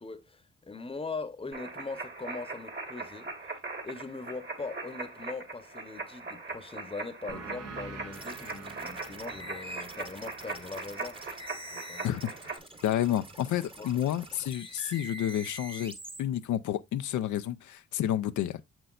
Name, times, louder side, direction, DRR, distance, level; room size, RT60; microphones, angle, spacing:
voice 1, 0.0-3.3 3.8-11.2 11.7-12.1 13.8-13.9, left 3 dB, 20° left, 0.9 m, -41 dB
sound 1, 1.5-12.6, right 3 dB, 40° right, 1.7 m, -40 dB
sound 2, 7.3-12.5, right 5 dB, 60° right, 1.1 m, -48 dB
sound 3, 8.1-16.2, right 1 dB, 20° right, 1.1 m, -46 dB
voice 2, 12.8-15.9 16.2-18.6, left 11 dB, 80° left, 0.5 m, -30 dB
6.5 x 6.0 x 2.4 m
cardioid pair, 80°, 29 cm